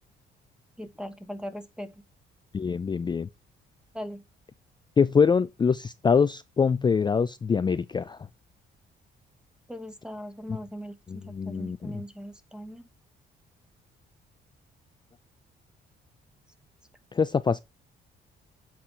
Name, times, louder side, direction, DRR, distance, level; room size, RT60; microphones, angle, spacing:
voice 1, 0.8-1.9 3.9-4.2 9.7-12.8, equal, 5° right, 1.1 m, -39 dB
voice 2, 2.5-3.3 5.0-8.2 11.1-12.0 17.1-17.6, left 6 dB, 25° left, 0.3 m, -24 dB
7.7 x 4.3 x 4.6 m
cardioid pair, 90°, 20 cm